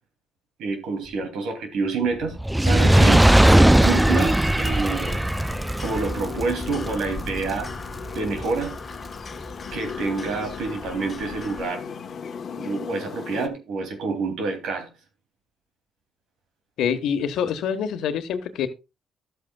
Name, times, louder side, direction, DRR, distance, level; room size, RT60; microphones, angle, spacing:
voice 1, 0.6-2.4 2.6-5.2 5.8-7.7 8.1-8.8 9.7-11.8 12.5-14.9, right 4 dB, 80° right, 2.7 m, -28 dB
Fire, 2.4-8.8 9.5-9.6, right 1 dB, 5° right, 0.4 m, -19 dB
sound 1, 4.6-13.5, left 6 dB, 55° left, 1.1 m, -37 dB
sound 2, 5.8-11.7, left 3 dB, 30° left, 1.3 m, -41 dB
voice 2, 16.8-18.7, left 8 dB, 80° left, 1.4 m, -25 dB
13.0 x 8.1 x 2.3 m
cardioid pair, 95°, 0 cm